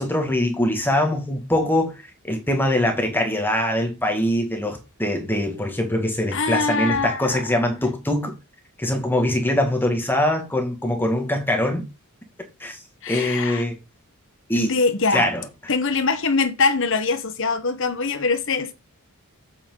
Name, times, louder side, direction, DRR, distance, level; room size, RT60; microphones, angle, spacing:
voice 1, 0.0-8.3 8.8-11.9 12.6-12.8 13.1-13.7 14.5-14.7 15.1-15.5, left 1 dB, 10° left, 2.2 m, -23 dB
voice 2, 6.3-7.4 13.0-13.6 14.6-15.3 15.7-18.7, left 4 dB, 60° left, 1.4 m, -23 dB
8.3 x 8.2 x 4.0 m
head